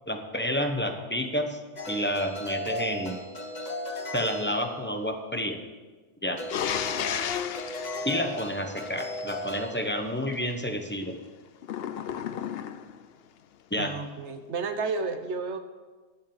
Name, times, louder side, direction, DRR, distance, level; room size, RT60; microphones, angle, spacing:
voice 1, 0.1-1.6 1.9-3.2 4.1-5.6 6.2-6.4 8.0-11.1 13.7-13.9, equal, 10° left, 4 dB, 1.0 m, -29 dB
sound 1, 1.8-5.1 6.3-9.8, left 1 dB, 40° left, 1.4 m, -36 dB
sound 2, 6.5-9.2 11.6-13.0, left 9 dB, 65° left, 0.8 m, -33 dB
voice 2, 13.8-15.6, right 4 dB, 75° right, 8 dB, 1.3 m, -32 dB
11.0 x 7.4 x 7.2 m, 1.3 s
omnidirectional pair, 1.2 m